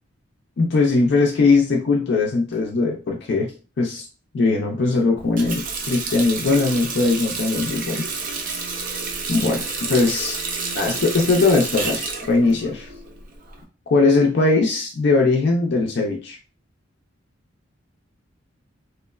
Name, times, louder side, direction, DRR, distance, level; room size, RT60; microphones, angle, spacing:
voice 1, 0.6-3.5 3.8-4.1 4.3-8.0 9.3-10.4 10.7-12.9 13.9-16.4, left 3 dB, 60° left, 0 dB, 0.4 m, -20 dB
Water tap faucet, 5.2-13.6, right 4 dB, 45° right, 0.5 m, -30 dB
3.0 x 2.0 x 2.2 m, 0.35 s
head